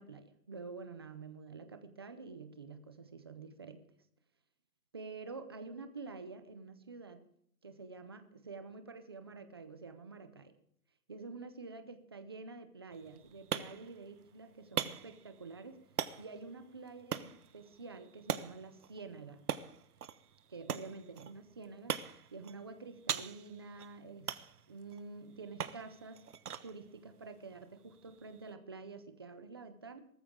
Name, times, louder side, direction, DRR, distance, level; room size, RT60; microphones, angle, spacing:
voice 1, 0.0-3.9 4.9-7.3 7.6-10.6 11.1-15.8 16.2-19.4 20.5-24.4 24.7-26.2 26.6-30.0, right 4 dB, 20° right, 9 dB, 0.6 m, -48 dB
sound 1, 12.9-28.5, right 8 dB, 85° right, 1.4 m, -43 dB
19.5 x 14.0 x 3.7 m, 0.66 s
hypercardioid pair, 165°, 45 cm